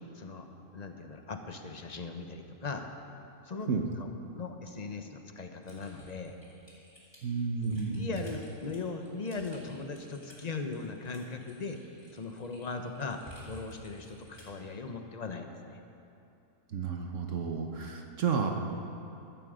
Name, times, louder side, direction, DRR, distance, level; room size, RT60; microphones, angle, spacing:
voice 1, 0.1-0.5 0.7-2.9 3.4-3.7 4.0-4.1 4.3-6.4 7.6-11.8 12.1-15.8, left 4 dB, 35° left, 5 dB, 0.7 m, -39 dB
Typing, 5.6-14.6, equal, 15° left, 3.6 m, -54 dB
voice 2, 7.2-8.2 16.7-18.5, right 5 dB, 60° right, 3 dB, 1.2 m, -31 dB
14.5 x 12.5 x 5.0 m, 2.7 s
omnidirectional pair, 1.6 m